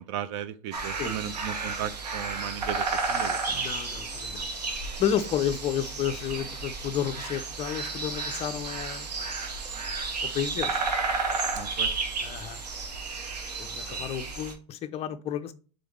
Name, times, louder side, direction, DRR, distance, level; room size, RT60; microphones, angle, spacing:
voice 1, 0.0-3.6 11.5-11.9 13.7-14.0, right 10 dB, 50° right, 0.4 m, -36 dB
sound 1, 0.7-14.5, right 4 dB, 90° right, 1.0 m, -32 dB
voice 2, 3.5-4.5 5.0-9.1 10.2-10.8 12.2-12.6 13.6-15.5, left 9 dB, 30° left, 0.5 m, -31 dB
3.8 x 3.4 x 3.5 m
hypercardioid pair, 100°, 20 cm